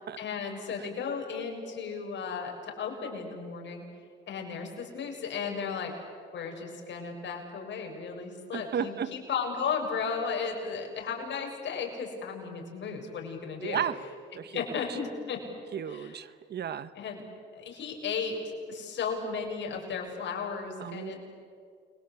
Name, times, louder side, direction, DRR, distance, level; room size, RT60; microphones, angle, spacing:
voice 1, 0.2-3.8 4.3-5.9 6.3-13.8 14.5-15.4 15.9-16.1 16.9-17.2 17.5-21.2, left 5 dB, 65° left, 1 dB, 6.9 m, -35 dB
voice 2, 8.5-9.1 13.6-14.0 14.3-15.0 15.7-16.9 20.8-21.2, right 8 dB, 55° right, 14 dB, 1.2 m, -34 dB
30.0 x 23.5 x 8.4 m, 2.2 s
cardioid pair, 90°, 20 cm